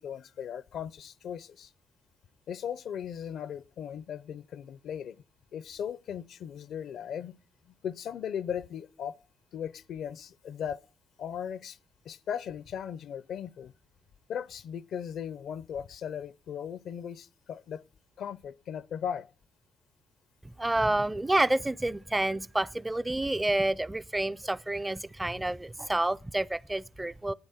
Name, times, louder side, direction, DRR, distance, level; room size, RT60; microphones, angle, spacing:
voice 1, 0.0-1.7 2.5-5.2 5.5-7.3 7.8-9.2 9.5-10.8 11.2-11.8 12.1-13.7 14.3-17.8 18.2-19.3, left 8 dB, 70° left, 0.5 m, -37 dB
voice 2, 20.4-27.3, right 1 dB, 15° right, 0.5 m, -29 dB
11.5 x 9.2 x 5.6 m
cardioid pair, 90°, 0 cm